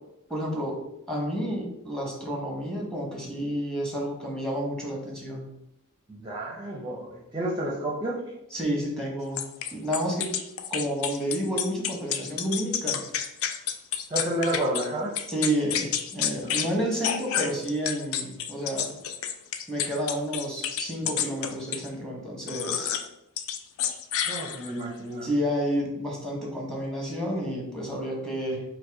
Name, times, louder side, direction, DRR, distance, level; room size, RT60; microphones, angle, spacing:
voice 1, 0.3-0.8 1.1-5.5 8.5-10.3 10.7-13.0 15.3-18.9 19.7-22.9 25.2-28.6, equal, 5° left, -1 dB, 1.1 m, -30 dB
voice 2, 6.1-8.2 14.1-15.1 16.4-16.7 24.3-25.3, right 1 dB, 20° right, -3 dB, 0.6 m, -30 dB
sound 1, 9.4-14.9 15.2-16.7 17.0-21.9 22.5-23.1 23.4-24.8, left 9 dB, 65° left, 0.4 m, -30 dB
5.2 x 2.2 x 4.7 m, 0.84 s
head